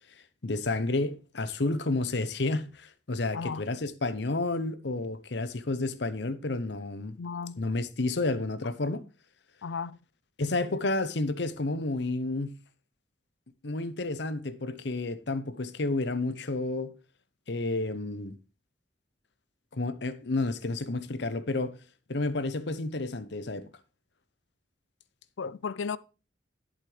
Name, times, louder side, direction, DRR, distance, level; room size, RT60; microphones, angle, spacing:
voice 1, 0.4-7.2 7.6-9.0 10.4-12.5 13.6-16.9 17.5-18.4 19.7-21.8 22.1-23.7, left 2 dB, 65° left, 0.8 m, -30 dB
voice 2, 3.3-3.7 7.2-7.6 9.6-10.0 25.4-26.0, left 5 dB, 85° left, 0.5 m, -34 dB
11.5 x 7.5 x 3.3 m
head